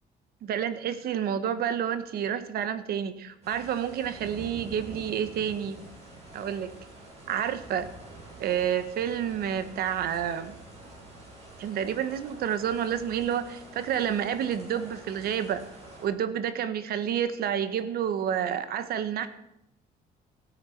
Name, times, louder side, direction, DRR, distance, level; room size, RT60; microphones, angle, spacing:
voice 1, 0.4-5.8 6.3-6.7 7.3-7.9 8.4-10.6 11.6-15.6 16.0-19.3, right 9 dB, 65° right, 12 dB, 1.3 m, -29 dB
sound 1, 3.4-16.1, right 2 dB, 40° right, 6.8 m, -47 dB
16.5 x 9.6 x 5.9 m, 0.83 s
cardioid pair, 110°, 17 cm